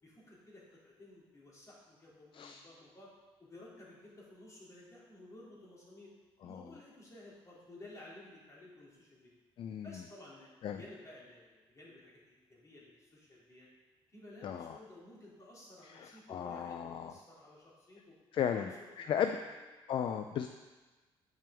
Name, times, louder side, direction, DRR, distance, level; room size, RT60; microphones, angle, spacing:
voice 1, 0.0-3.1 3.4-6.1 6.4-9.3 9.8-13.7 14.1-18.2 18.5-19.6, left 1 dB, 30° left, -6 dB, 2.7 m, -54 dB
voice 2, 9.6-9.9 10.6-10.8 14.4-14.8 15.9-17.1 18.3-18.7 19.0-19.3 19.9-20.5, left 9 dB, 55° left, 7 dB, 0.4 m, -35 dB
8.6 x 6.0 x 3.5 m, 1.2 s
cardioid pair, 105°, 11 cm